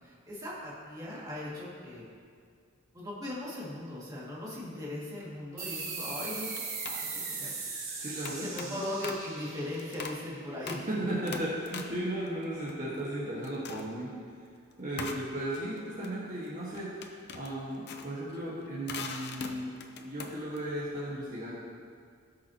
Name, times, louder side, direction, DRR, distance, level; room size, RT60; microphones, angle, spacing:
voice 1, 0.0-2.0 2.9-6.5 6.9-7.5 7.9-8.1 8.4-10.9, left 1 dB, 20° right, -7 dB, 2.2 m, -39 dB
sound 1, 5.6-10.7, right 4 dB, 70° right, 1.8 m, -39 dB
sound 2, 5.7-6.0 6.5-7.1 8.2-9.3 9.7-10.3 10.7-10.9 11.3-13.2 13.4-14.0 15.0-20.6, left 4 dB, 50° left, 0.7 m, -43 dB
voice 2, 8.0-8.7 10.7-14.1 14.8-21.5, right 1 dB, 40° right, -8 dB, 1.6 m, -36 dB
17.5 x 6.2 x 2.9 m, 2.2 s
head